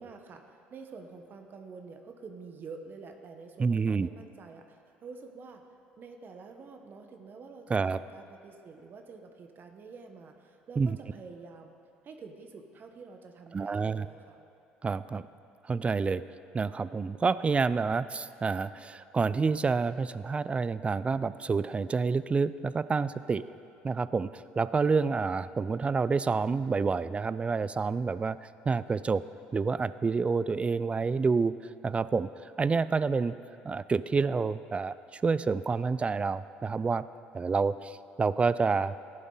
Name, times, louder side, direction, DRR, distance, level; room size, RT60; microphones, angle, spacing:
voice 1, 0.0-5.7 6.0-11.8 12.0-14.4, right 4 dB, 45° right, 5 dB, 1.1 m, -48 dB
voice 2, 3.6-4.1 7.7-8.0 10.8-11.0 13.5-14.1 14.8-15.2 15.7-16.2 16.5-23.4 23.8-28.4 28.7-29.2 29.5-31.5 31.8-32.3 32.6-33.3 33.6-37.0 37.3-39.0, right 4 dB, 25° right, 16 dB, 0.4 m, -28 dB
14.5 x 11.0 x 3.9 m, 2.6 s
hypercardioid pair, 70°, 5 cm